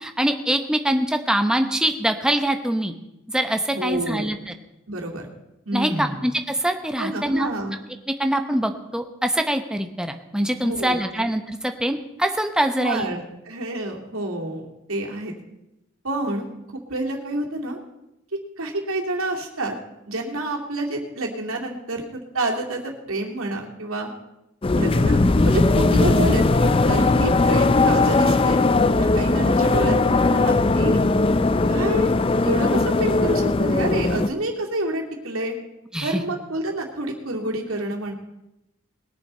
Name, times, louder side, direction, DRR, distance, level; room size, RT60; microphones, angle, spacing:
voice 1, 0.0-2.9 3.3-4.5 5.7-7.5 8.2-13.1 35.9-36.2, right 1 dB, 5° right, 6 dB, 0.9 m, -24 dB
voice 2, 3.7-4.3 4.9-5.3 5.7-6.2 7.0-7.7 10.6-11.2 12.8-15.3 16.0-16.5 16.7-17.8 18.3-19.8 20.1-24.1 24.7-28.6 29.0-30.0 30.3-31.0 31.7-32.1 32.4-35.6 36.0-38.1, right 2 dB, 80° right, 0 dB, 2.5 m, -28 dB
sound 1, 24.6-34.3, left 3 dB, 25° left, 0.4 m, -19 dB
21.0 x 7.2 x 5.5 m, 0.91 s
head